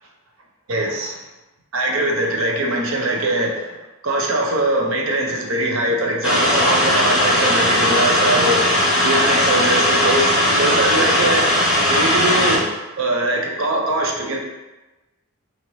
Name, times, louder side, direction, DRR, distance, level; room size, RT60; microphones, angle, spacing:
voice 1, 0.7-1.2 1.7-3.6 4.0-8.6 9.0-10.3 10.6-11.5 11.9-12.6 13.0-14.4, right 1 dB, 70° right, 0 dB, 0.5 m, -21 dB
sound 1, 6.2-12.6, equal, 5° right, 0.9 m, -17 dB
2.8 x 2.6 x 2.9 m, 1.1 s
head